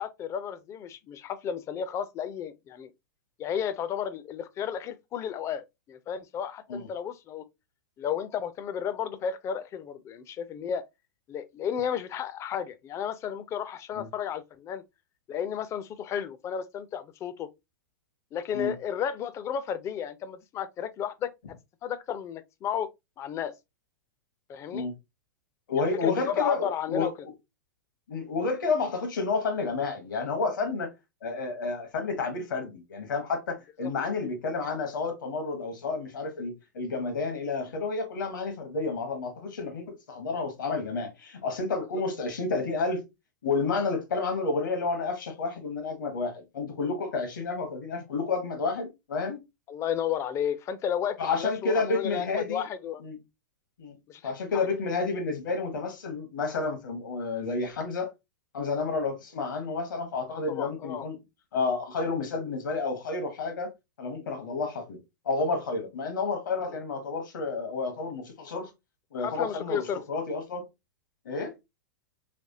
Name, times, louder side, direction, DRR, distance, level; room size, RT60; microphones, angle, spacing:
voice 1, 0.0-2.9 3.4-7.4 8.0-10.8 11.3-14.8 15.3-17.5 18.3-21.3 21.8-22.9 23.2-23.5 24.5-24.9 25.8-27.1 49.7-53.0 54.1-54.7 60.3-61.1 69.2-70.0, left 8 dB, 30° left, 0.4 m, -33 dB
voice 2, 25.7-27.1 28.1-30.9 31.2-43.0 43.4-49.4 51.2-52.6 53.0-53.2 53.8-54.0 54.2-58.1 58.5-61.2 61.5-63.7 64.0-65.0 65.2-68.7 69.1-70.7 71.2-71.5, left 4 dB, 80° left, 1.3 m, -30 dB
3.4 x 3.1 x 2.6 m
hypercardioid pair, 115°, 10 cm